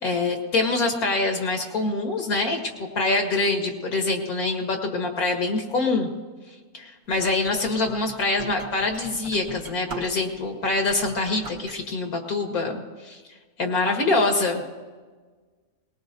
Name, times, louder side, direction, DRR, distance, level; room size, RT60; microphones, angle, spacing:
voice 1, 0.0-6.1 6.7-13.2 13.6-14.6, left 3 dB, 80° left, 2 dB, 2.2 m, -25 dB
sound 1, 7.1-10.4 10.8-11.8, right 3 dB, 75° right, 2.1 m, -41 dB
21.0 x 19.5 x 2.7 m, 1.4 s
omnidirectional pair, 1.6 m